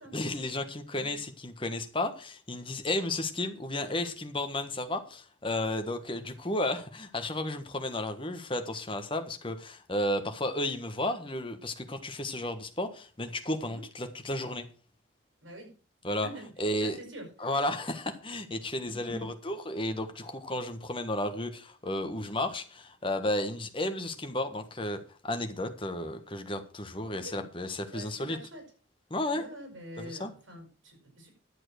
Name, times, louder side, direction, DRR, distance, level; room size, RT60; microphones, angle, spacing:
voice 1, 0.1-14.7 16.0-16.3 16.6-17.0 17.4-28.4 29.1-29.5 30.0-30.3, left 1 dB, 25° left, 1.4 m, -33 dB
voice 2, 15.4-15.7 16.0-16.5 16.8-17.3 18.8-19.2 27.1-27.4 27.9-28.6 29.3-31.3, right 1 dB, 80° right, 6.0 m, -45 dB
11.5 x 7.6 x 6.4 m
head